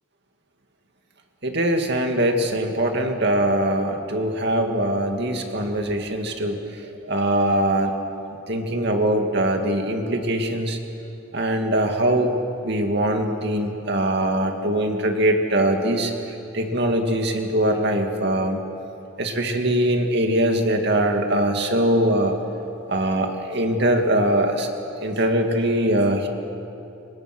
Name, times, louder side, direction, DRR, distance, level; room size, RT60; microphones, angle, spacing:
voice 1, 1.4-7.9 8.5-10.8 11.3-12.3 12.6-16.1 16.5-18.6 19.2-22.3 22.9-24.7 25.0-26.3, right 1 dB, 50° right, 3 dB, 2.4 m, -22 dB
28.5 x 24.5 x 6.2 m, 2.8 s
head